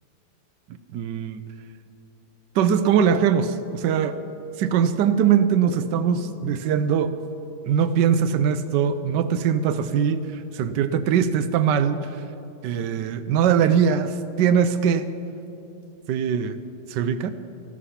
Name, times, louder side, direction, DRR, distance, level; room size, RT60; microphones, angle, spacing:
voice 1, 0.7-1.4 2.5-4.2 4.6-7.2 7.6-12.2 12.6-15.1 16.1-16.6 16.9-17.3, right 7 dB, 90° right, 11 dB, 1.3 m, -21 dB
15.5 x 13.5 x 5.7 m, 2.7 s
omnidirectional pair, 1.8 m